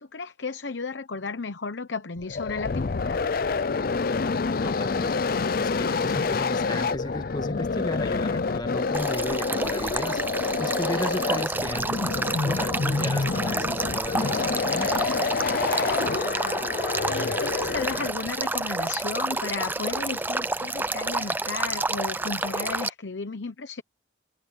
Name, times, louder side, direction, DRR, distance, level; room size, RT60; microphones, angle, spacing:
voice 1, 0.0-3.2 15.9-16.6 17.1-23.8, left 4 dB, 75° left, 0.9 m, -34 dB
sound 1, 2.2-18.3, left 4 dB, 50° left, 0.5 m, -27 dB
voice 2, 4.6-5.2 5.6-10.2 10.6-14.9, left 1 dB, 20° left, 1.5 m, -35 dB
Male speech man speaking / Stream / Trickle dribble, 8.9-22.9, right 2 dB, 10° right, 0.5 m, -29 dB
head